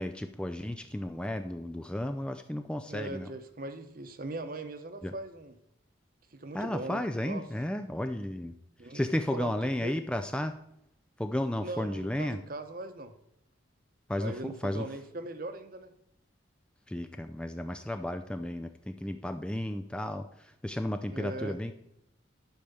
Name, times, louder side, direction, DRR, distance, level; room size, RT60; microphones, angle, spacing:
voice 1, 0.0-3.3 5.0-5.1 6.5-8.5 8.9-10.5 11.2-12.4 14.1-14.8 16.9-21.7, left 1 dB, 5° left, 7 dB, 0.4 m, -33 dB
voice 2, 2.9-5.5 6.3-7.4 8.8-9.9 11.6-13.1 14.2-15.9 21.1-21.7, right 2 dB, 45° right, 9 dB, 1.0 m, -40 dB
12.0 x 5.1 x 6.9 m, 0.78 s
head